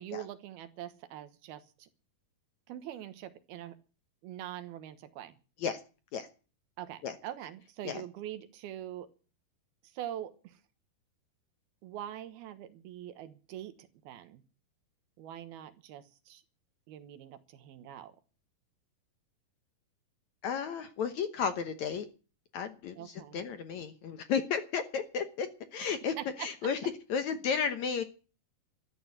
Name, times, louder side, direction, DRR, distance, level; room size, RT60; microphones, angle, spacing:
voice 1, 0.0-1.9 2.7-3.8 4.2-5.3 6.8-9.1 9.8-10.6 11.8-14.4 15.2-16.4 16.9-18.2 23.0-23.5 26.2-26.5, right 11 dB, 80° right, 10 dB, 3.1 m, -43 dB
voice 2, 20.4-22.1 22.5-28.0, left 6 dB, 65° left, 9 dB, 2.0 m, -33 dB
13.5 x 9.3 x 9.4 m, 0.36 s
omnidirectional pair, 4.4 m